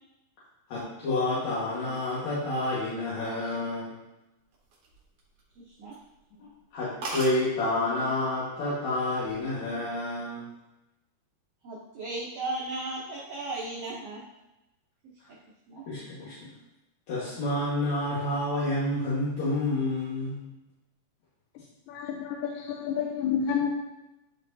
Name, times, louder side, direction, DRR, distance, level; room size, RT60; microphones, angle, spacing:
voice 1, 0.7-3.9 6.7-10.4 15.9-16.5 17.1-20.4, left 2 dB, 60° left, -9 dB, 2.5 m, -29 dB
sound 1, 4.5-5.5 5.9-6.1 6.5-6.6 6.8-6.9 7.0-7.4 8.3-8.6 9.0-9.4, right 2 dB, 60° right, 1.7 m, -37 dB
voice 2, 5.6-6.0 11.6-14.2 15.7-15.8, right 2 dB, 80° right, -4 dB, 1.3 m, -35 dB
voice 3, 21.9-23.7, left 7 dB, 85° left, 1 dB, 2.3 m, -29 dB
10.0 x 4.5 x 2.6 m, 0.97 s
omnidirectional pair, 4.0 m